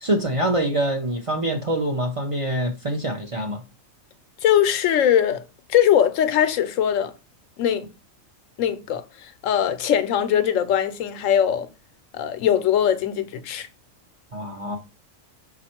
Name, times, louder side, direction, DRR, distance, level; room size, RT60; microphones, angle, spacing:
voice 1, 0.0-3.6 14.3-14.8, right 1 dB, 40° right, 0.5 m, -25 dB
voice 2, 4.4-5.4 5.7-7.1 7.6-7.9 8.6-11.7 12.1-13.7, left 9 dB, 85° left, 1.0 m, -21 dB
5.2 x 2.4 x 4.3 m
omnidirectional pair, 1.3 m